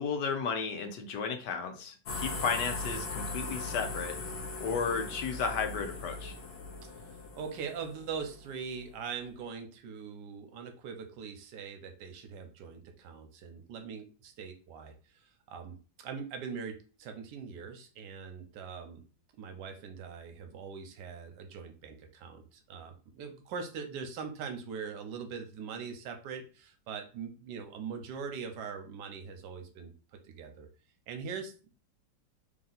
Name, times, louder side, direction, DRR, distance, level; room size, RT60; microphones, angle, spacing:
voice 1, 0.0-1.9 2.2-4.1 4.6-6.3, left 5 dB, 75° left, 5 dB, 1.3 m, -33 dB
sound 1, 2.1-8.9, left 3 dB, 55° left, 0.8 m, -39 dB
voice 2, 7.4-15.2 15.5-19.0 19.4-29.9 30.3-30.7 31.1-31.7, right 6 dB, 75° right, 6 dB, 1.3 m, -42 dB
3.3 x 2.7 x 3.9 m, 0.37 s
omnidirectional pair, 1.9 m